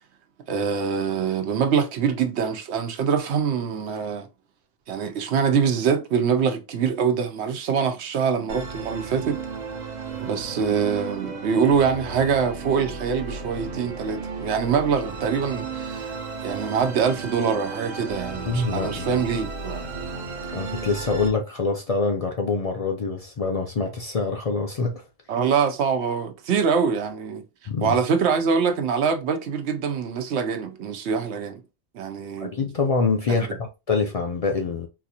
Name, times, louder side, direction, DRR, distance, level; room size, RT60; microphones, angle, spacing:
voice 1, 0.5-4.3 4.9-9.4 10.2-16.1 16.4-19.8 25.3-27.4 27.8-31.6 31.9-32.6 33.4-33.5, right 6 dB, 85° right, 1.0 m, -24 dB
Musical instrument, 8.5-21.3, right 4 dB, 50° right, 0.7 m, -34 dB
voice 2, 18.5-19.2 20.5-25.0 27.7-28.0 32.4-34.9, left 4 dB, 50° left, 0.4 m, -25 dB
4.0 x 2.5 x 2.7 m
omnidirectional pair, 1.1 m